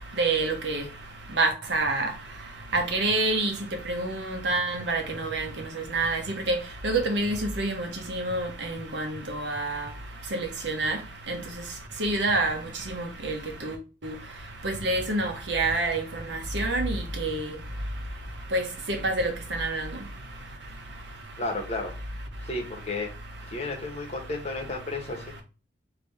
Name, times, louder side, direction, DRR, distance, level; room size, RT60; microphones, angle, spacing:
voice 1, 0.2-0.8 1.4-2.1 2.7-3.5 3.9-5.5 5.9-6.2 6.5-6.6 6.8-8.5 8.9-9.8 10.3-10.4 10.6-11.0 11.3-11.4 12.0-12.6 13.2-13.4 13.6-13.7 14.0-14.1 14.6-16.0 16.5-17.5 18.5-18.6 18.9-19.3 19.6-19.8, right 2 dB, 80° right, 1.0 m, -26 dB
voice 2, 21.4-21.9 22.4-23.1 23.4-25.4, left 2 dB, 35° left, 1.1 m, -33 dB
3.5 x 3.0 x 4.1 m
head